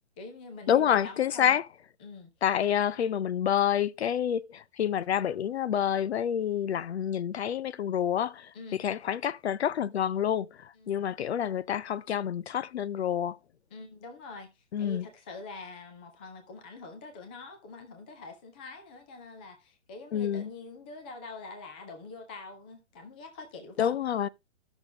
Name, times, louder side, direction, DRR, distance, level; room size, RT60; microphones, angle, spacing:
voice 1, 0.2-1.6 2.0-2.3 8.5-8.8 10.7-11.0 13.7-24.0, left 3 dB, 10° left, 0.4 m, -45 dB
voice 2, 0.7-1.6 2.4-13.4 14.7-15.1 20.1-20.5 23.8-24.3, left 9 dB, 65° left, 0.6 m, -28 dB
12.5 x 6.2 x 3.3 m
hypercardioid pair, 155°, 35 cm